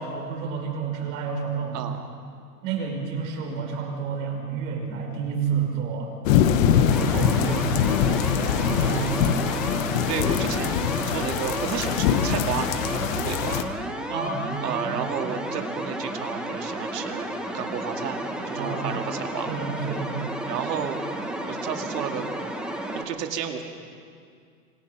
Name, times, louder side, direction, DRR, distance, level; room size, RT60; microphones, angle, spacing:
voice 1, 0.0-1.8 2.6-6.1 6.7-7.7 8.6-9.6 14.1-14.9 18.5-18.8 19.5-20.2, right 5 dB, 55° right, 1 dB, 5.4 m, -30 dB
voice 2, 1.7-2.1 8.6-9.3 10.1-13.6 14.6-17.3 17.5-18.2 18.5-19.6 20.5-21.0 21.5-22.3 22.9-23.6, right 8 dB, 75° right, 4 dB, 2.4 m, -32 dB
sound 1, 6.2-13.6, left 8 dB, 50° left, 1.4 m, -23 dB
sound 2, 6.9-23.1, right 1 dB, ahead, 1.3 m, -32 dB
26.5 x 18.5 x 5.7 m, 2.2 s
hypercardioid pair, 140°, 49 cm